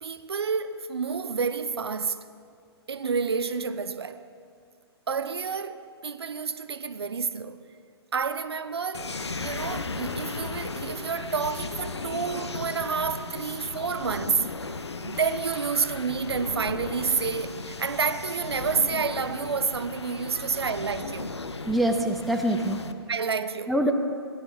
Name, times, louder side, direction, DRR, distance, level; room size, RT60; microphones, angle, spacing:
voice 1, 0.0-2.3 2.9-4.3 5.1-7.7 8.1-14.6 15.0-21.3 23.1-23.7, right 5 dB, 70° right, 0.5 m, -29 dB
sound 1, 8.9-22.9, left 3 dB, 80° left, 0.6 m, -36 dB
voice 2, 20.3-20.7 21.7-22.8 23.7-23.9, right 1 dB, ahead, 0.5 m, -25 dB
16.0 x 10.0 x 3.1 m
figure-of-eight pair, 120°, 14 cm